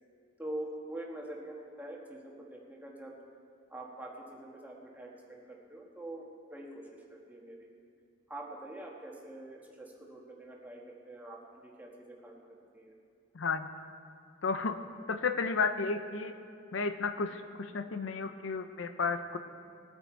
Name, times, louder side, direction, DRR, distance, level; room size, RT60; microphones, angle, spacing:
voice 1, 0.4-3.1 3.7-7.7 8.3-12.4 12.7-12.9, right 1 dB, 10° right, -2 dB, 1.6 m, -45 dB
voice 2, 13.3-13.7 14.4-14.8 15.1-16.3 16.7-19.4, left 4 dB, 70° left, 9 dB, 0.6 m, -32 dB
20.0 x 9.0 x 4.5 m, 2.4 s
head